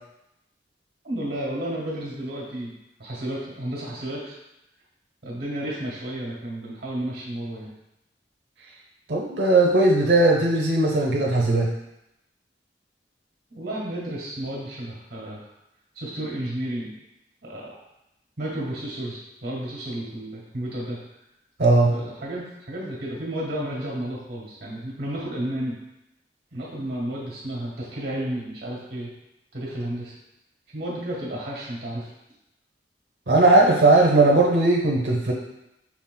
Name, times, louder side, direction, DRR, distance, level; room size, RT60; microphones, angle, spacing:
voice 1, 1.0-2.7 3.0-4.3 5.2-7.7 13.5-15.4 15.9-16.9 17.4-17.8 18.4-21.0 21.9-25.7 26.5-29.1 29.5-30.1 30.7-32.1, right 1 dB, 60° right, -4 dB, 1.4 m, -32 dB
voice 2, 9.1-11.7 21.6-21.9 33.3-35.3, right 2 dB, 85° right, -2 dB, 0.7 m, -18 dB
5.9 x 3.7 x 2.2 m, 0.88 s
head